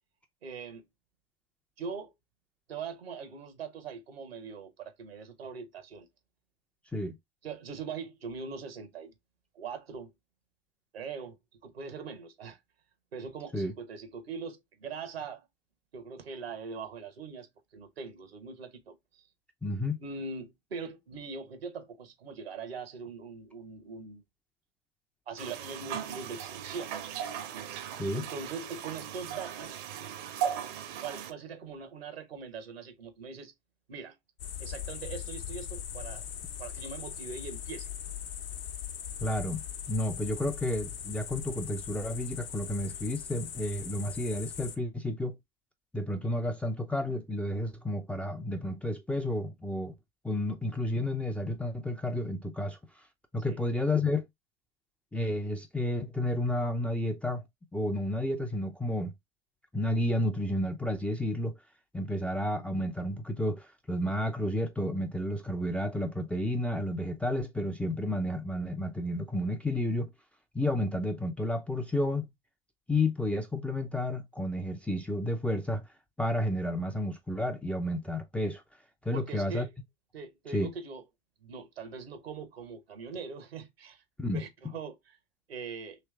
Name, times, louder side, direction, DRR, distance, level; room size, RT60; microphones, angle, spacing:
voice 1, 0.4-0.8 1.8-2.1 2.7-6.1 7.4-9.1 9.5-10.1 10.9-11.3 11.6-12.6 13.1-15.4 15.9-17.5 17.7-19.2 20.0-24.2 25.3-27.0 28.1-29.8 31.0-33.5 33.9-34.1 34.6-36.3 36.6-37.9 53.4-53.6 79.1-79.7 80.1-81.0 81.4-84.0 84.3-85.2 85.5-86.0, right 5 dB, 80° right, 1.1 m, -41 dB
voice 2, 19.6-20.0 28.0-28.2 39.2-45.3 45.9-49.9 50.2-52.8 53.3-54.3 55.1-57.4 57.7-59.1 59.7-61.5 61.9-70.1 70.5-72.3 72.9-75.8 76.2-78.6 79.0-79.7 80.5-80.7 84.2-84.4, left 1 dB, 5° left, 0.4 m, -31 dB
sound 1, 25.4-31.3, right 9 dB, 50° right, 0.7 m, -37 dB
sound 2, 34.4-44.8, left 9 dB, 70° left, 0.8 m, -40 dB
3.2 x 3.1 x 3.3 m
figure-of-eight pair, 85°, 30 cm